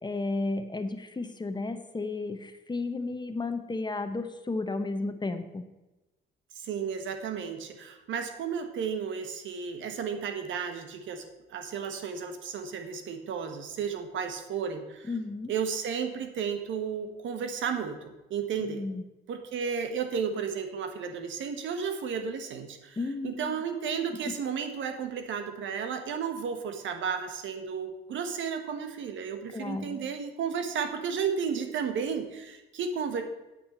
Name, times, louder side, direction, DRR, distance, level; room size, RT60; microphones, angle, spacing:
voice 1, 0.0-5.6 15.1-15.5 18.6-19.0 23.0-23.6 24.2-24.3 29.5-30.0, left 3 dB, 20° left, 8 dB, 0.9 m, -33 dB
voice 2, 6.5-11.2 11.5-15.1 15.5-18.8 19.3-23.0 23.2-33.2, right 6 dB, 75° right, 7 dB, 1.2 m, -33 dB
8.6 x 8.5 x 4.4 m, 1.0 s
cardioid pair, 90°, 20 cm